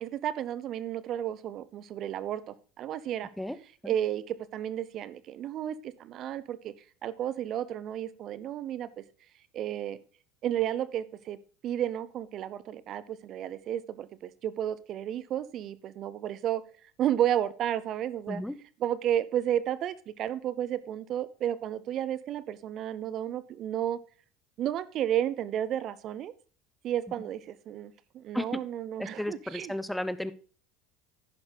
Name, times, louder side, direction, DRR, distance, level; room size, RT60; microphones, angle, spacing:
voice 1, 0.0-3.3 3.8-6.7 7.0-9.0 9.5-10.0 10.4-11.4 11.6-16.6 17.0-18.4 18.8-24.0 24.6-26.3 26.8-29.7, right 11 dB, 50° right, 16 dB, 0.6 m, -32 dB
voice 2, 29.0-30.3, left 1 dB, 5° left, 15 dB, 0.8 m, -33 dB
10.5 x 10.5 x 2.2 m, 0.40 s
hypercardioid pair, 75°, 0 cm